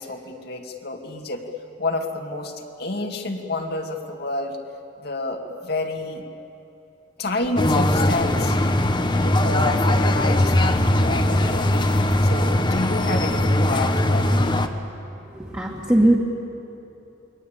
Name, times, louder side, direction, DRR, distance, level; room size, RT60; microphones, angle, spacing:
voice 1, 0.0-1.5 1.8-4.6 5.0-6.2 7.2-8.6 9.2-14.3, left 2 dB, 55° left, 2 dB, 2.2 m, -29 dB
sound 1, 7.6-14.7, left 1 dB, 25° left, 1.2 m, -20 dB
voice 2, 15.2-16.2, right 1 dB, 10° right, -3 dB, 2.3 m, -19 dB
28.5 x 23.0 x 8.9 m, 2.9 s
head